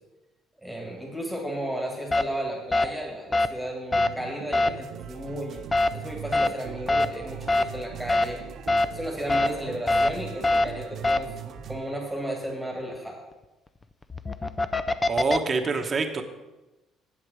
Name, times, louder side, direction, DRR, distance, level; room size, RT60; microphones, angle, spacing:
voice 1, 0.6-5.6 5.9-8.4 8.9-13.2, right 1 dB, ahead, -1 dB, 2.1 m, -34 dB
sound 1, 2.1-2.2 2.7-2.9 3.3-3.5 3.9-4.1 4.5-4.7 5.7-5.9 6.3-6.5 6.9-7.1 7.5-7.6 8.1-8.2 8.7-8.9 9.3-9.5 9.9-10.1 10.4-10.6 11.0-11.2 14.0-15.4, left 2 dB, 20° left, 0.5 m, -22 dB
sound 2, 3.9-11.9, right 12 dB, 90° right, 0.6 m, -42 dB
sound 3, 4.8-11.8, right 6 dB, 50° right, 1.1 m, -45 dB
voice 2, 15.1-16.2, right 4 dB, 35° right, 5 dB, 1.1 m, -26 dB
8.6 x 7.9 x 6.4 m, 1.1 s
cardioid pair, 115°, 0 cm